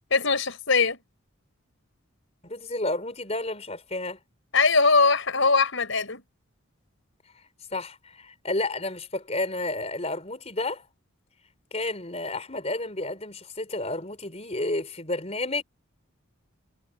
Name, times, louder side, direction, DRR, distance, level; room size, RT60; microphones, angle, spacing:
voice 1, 0.1-1.0 4.5-6.2, left 4 dB, 65° left, 5.4 m, -21 dB
voice 2, 2.4-4.2 7.7-10.8 11.7-15.6, left 2 dB, 30° left, 4.6 m, -31 dB
head